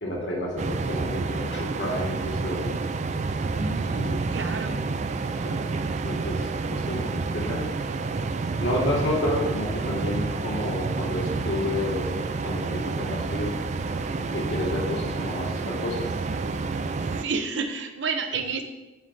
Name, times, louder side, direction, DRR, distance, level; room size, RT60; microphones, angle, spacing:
voice 1, 0.0-2.8 3.9-4.2 5.4-7.7 8.6-13.5 14.3-16.1, left 1 dB, 65° left, -3 dB, 2.0 m, -30 dB
sound 1, 0.6-17.2, right 3 dB, 35° right, 0.3 m, -29 dB
voice 2, 3.6-4.9 17.0-18.6, right 4 dB, 65° right, 6 dB, 0.7 m, -31 dB
8.1 x 7.8 x 2.7 m, 1.0 s
head